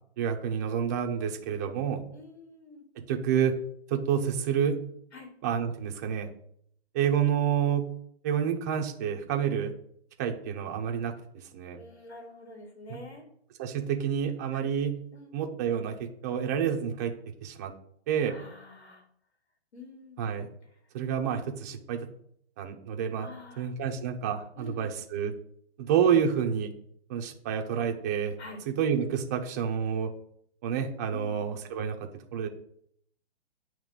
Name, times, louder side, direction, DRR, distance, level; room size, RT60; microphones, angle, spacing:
voice 1, 0.2-2.0 3.0-3.5 3.9-4.8 5.4-6.3 6.9-7.9 8.2-9.7 10.2-11.1 11.5-11.8 12.9-13.0 13.6-15.0 15.3-17.1 17.4-17.7 18.1-18.3 20.2-20.5 20.9-22.0 22.6-23.3 23.6-25.3 25.8-26.7 27.1-28.3 28.8-30.1 30.6-31.9 32.3-32.5, right 8 dB, 15° right, 3 dB, 0.4 m, -28 dB
voice 2, 2.1-2.8 5.1-5.3 9.3-9.5 11.7-13.2 14.5-14.7 15.1-15.4 18.2-19.0 19.7-20.2 20.7-20.8 23.2-23.7 24.6-24.9 28.4-28.6 31.1-31.4, left 3 dB, 75° left, 2 dB, 3.1 m, -46 dB
8.9 x 3.1 x 6.5 m, 0.67 s
hypercardioid pair, 155°, 33 cm